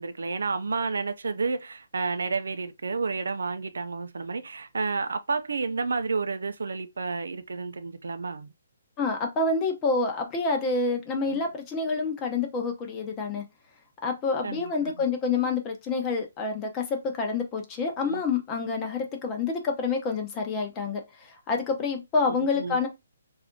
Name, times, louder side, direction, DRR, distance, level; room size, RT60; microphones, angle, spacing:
voice 1, 0.0-8.5 11.3-11.4 14.4-15.0 18.0-18.2 22.3-22.8, right 4 dB, 85° right, 0.5 m, -31 dB
voice 2, 9.0-13.4 14.0-22.9, left 4 dB, 20° left, 0.8 m, -28 dB
3.4 x 2.6 x 3.6 m
hypercardioid pair, 160°, 0 cm